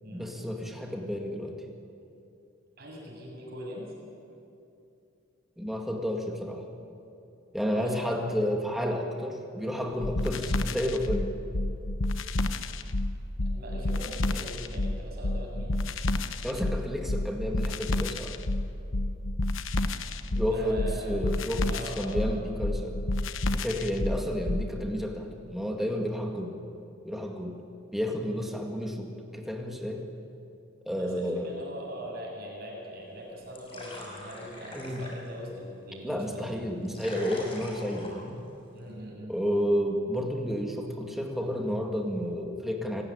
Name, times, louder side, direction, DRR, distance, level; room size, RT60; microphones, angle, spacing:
voice 1, 0.1-1.6 5.6-6.7 7.5-11.3 16.4-18.4 20.3-23.0 23.5-26.6 27.0-27.6 27.9-30.1 30.9-31.5 34.8-35.0 36.0-38.4 39.3-43.0, equal, ahead, 1 dB, 2.0 m, -31 dB
voice 2, 2.8-3.9 7.7-8.1 8.7-8.9 13.5-15.7 20.5-21.1 21.7-22.4 30.9-36.6 38.7-39.3, equal, 50° right, -1 dB, 7.5 m, -41 dB
sound 1, 10.0-24.7, left 2 dB, 75° left, 1.0 m, -29 dB
sound 2, 33.0-39.0, left 1 dB, 25° left, 5.6 m, -46 dB
27.0 x 16.5 x 9.8 m, 2.7 s
head